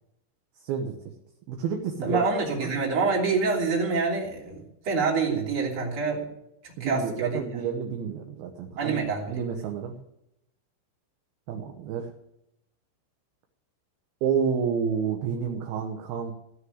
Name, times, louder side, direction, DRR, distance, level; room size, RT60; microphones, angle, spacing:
voice 1, 0.6-1.0 1.5-2.2 2.6-2.7 6.8-9.9 11.5-12.1 14.2-16.3, right 7 dB, 75° right, 3 dB, 2.4 m, -29 dB
voice 2, 2.0-6.3 6.8-7.4 8.8-9.3, right 4 dB, 30° right, -3 dB, 3.3 m, -26 dB
16.0 x 6.5 x 9.4 m, 0.84 s
omnidirectional pair, 5.6 m